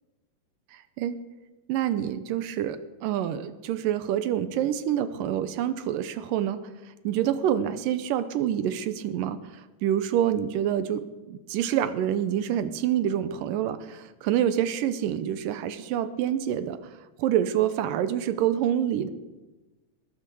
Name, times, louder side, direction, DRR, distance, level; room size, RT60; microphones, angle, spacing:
voice 1, 0.7-1.2 1.7-6.6 7.0-16.8 17.2-19.1, right 10 dB, 80° right, 12 dB, 2.4 m, -27 dB
20.5 x 8.7 x 6.9 m, 1.1 s
omnidirectional pair, 4.0 m